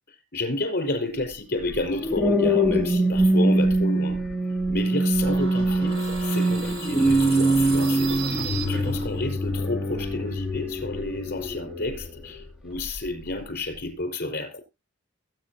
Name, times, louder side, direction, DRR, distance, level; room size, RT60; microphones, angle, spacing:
voice 1, 0.3-4.2 4.7-8.1 8.7-14.6, left 2 dB, 45° left, 4.9 m, -30 dB
sound 1, 1.7-12.2 12.8-13.1, right 1 dB, 5° right, 2.1 m, -23 dB
sound 2, 5.1-9.4, right 3 dB, 75° right, 4.6 m, -34 dB
21.5 x 8.9 x 2.8 m
head